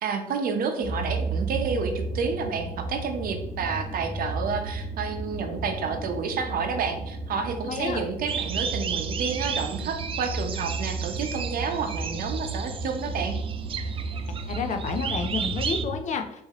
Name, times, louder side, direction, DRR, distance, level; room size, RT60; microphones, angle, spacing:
voice 1, 0.0-13.4, right 5 dB, 60° right, 5 dB, 0.8 m, -30 dB
sound 1, 0.8-15.9, right 3 dB, 90° right, 1.2 m, -33 dB
voice 2, 7.7-8.0 14.5-16.4, left 5 dB, 45° left, 6 dB, 0.5 m, -30 dB
sound 2, 8.3-15.8, right 7 dB, 35° right, 0.4 m, -34 dB
5.5 x 2.8 x 2.9 m, 0.78 s
cardioid pair, 110°, 17 cm